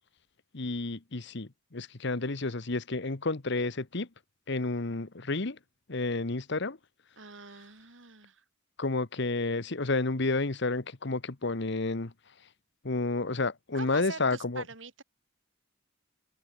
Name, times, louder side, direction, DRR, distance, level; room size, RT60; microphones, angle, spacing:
voice 1, 0.5-4.1 4.5-5.6 5.9-6.8 8.8-12.1 12.8-14.6, left 3 dB, 60° left, 1.3 m, -30 dB
voice 2, 7.2-8.4 13.7-15.0, right 4 dB, 70° right, 3.1 m, -44 dB
head